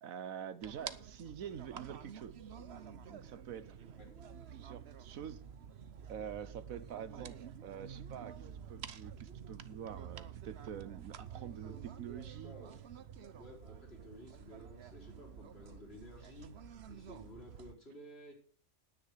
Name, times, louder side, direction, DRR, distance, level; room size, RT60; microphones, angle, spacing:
voice 1, 0.0-2.4 3.1-3.8 4.5-5.4 6.1-12.5, right 8 dB, 75° right, 1.4 m, -46 dB
sound 1, 0.6-17.7, right 8 dB, 55° right, 1.0 m, -49 dB
voice 2, 11.6-12.8 13.3-16.5 16.9-18.3, equal, 45° left, 4.9 m, -54 dB
10.5 x 9.8 x 6.6 m
omnidirectional pair, 1.4 m